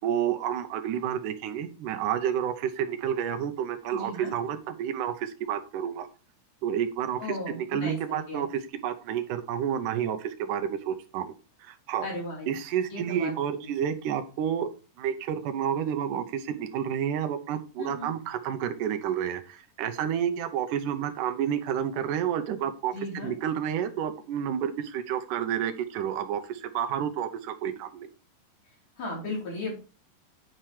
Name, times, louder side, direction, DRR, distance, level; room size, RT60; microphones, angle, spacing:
voice 1, 0.0-6.1 6.6-7.2 7.5-11.3 11.6-12.1 12.5-14.7 15.0-28.1, right 9 dB, 75° right, 7 dB, 2.3 m, -30 dB
voice 2, 3.9-4.3 7.2-8.5 12.0-12.5 12.9-13.7 17.8-18.1 22.9-23.3 29.0-29.7, left 2 dB, 70° left, -4 dB, 4.5 m, -36 dB
9.4 x 4.5 x 4.9 m, 0.33 s
omnidirectional pair, 3.8 m